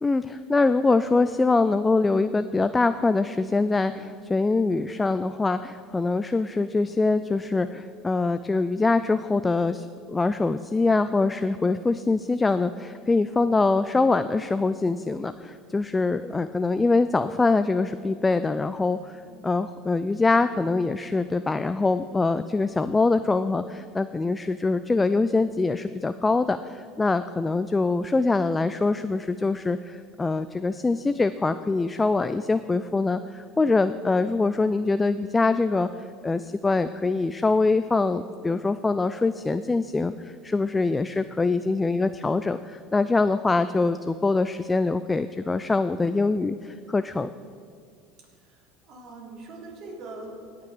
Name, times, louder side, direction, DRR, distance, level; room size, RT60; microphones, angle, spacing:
voice 1, 0.0-47.3, left 3 dB, 20° left, 11 dB, 0.3 m, -24 dB
voice 2, 19.1-19.5 48.4-50.6, right 2 dB, 55° right, -2 dB, 3.4 m, -43 dB
17.5 x 5.9 x 5.0 m, 2.2 s
hypercardioid pair, 85°, 0 cm